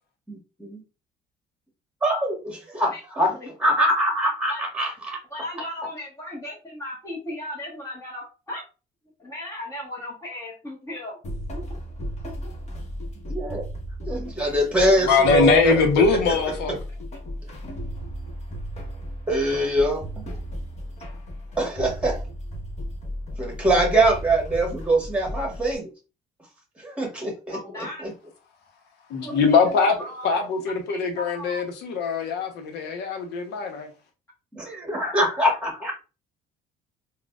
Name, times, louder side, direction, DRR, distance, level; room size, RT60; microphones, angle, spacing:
voice 1, 0.3-0.8 2.0-3.3 3.6-5.2 13.3-13.6 14.1-16.3 19.3-20.0 20.3-20.4 21.6-22.2 23.4-25.9 26.8-28.1 34.5-35.9, right 1 dB, 5° right, 1.6 m, -23 dB
voice 2, 2.9-3.5 4.5-4.6 5.3-8.6 9.2-11.2 11.5-11.6 27.5-28.0 29.2-30.4 30.9-31.6, left 1 dB, 20° left, 1.2 m, -36 dB
sound 1, 11.2-25.8, equal, 40° left, 1.1 m, -35 dB
voice 3, 15.0-16.8 29.1-30.0 30.2-33.9, left 5 dB, 80° left, 0.9 m, -22 dB
3.9 x 2.3 x 2.3 m
cardioid pair, 110°, 17 cm